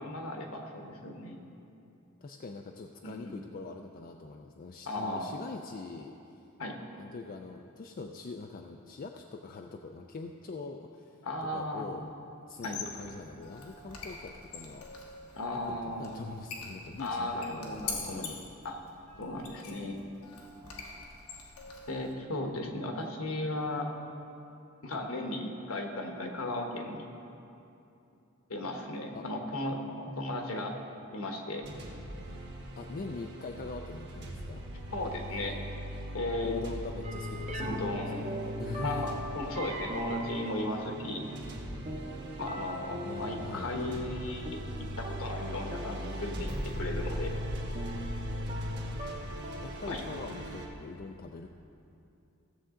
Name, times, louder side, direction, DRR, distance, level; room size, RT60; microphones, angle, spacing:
voice 1, 0.0-1.4 3.0-3.4 4.9-5.4 6.6-6.7 11.2-11.8 12.6-12.8 15.3-16.2 17.0-18.3 18.6-18.8 19.2-20.0 21.9-23.9 24.8-27.1 28.5-30.7 31.1-31.7 34.9-35.6 36.1-36.6 37.6-38.5 38.8-41.3 42.4-47.3 49.9-50.0, left 2 dB, 65° left, 2 dB, 1.2 m, -36 dB
voice 2, 2.2-6.5 7.0-12.1 12.5-14.9 15.5-18.4 29.1-29.3 32.8-34.7 36.4-38.3 38.6-39.1 43.0-43.7 49.1-51.5, left 3 dB, 40° left, 3 dB, 0.4 m, -43 dB
Squeak, 12.5-22.1, left 4 dB, 90° left, 1.3 m, -44 dB
sound 1, 31.6-50.7, equal, 50° right, 1.4 m, -39 dB
sound 2, 37.0-49.7, right 1 dB, 30° right, 0.7 m, -41 dB
16.0 x 7.3 x 3.8 m, 2.7 s
head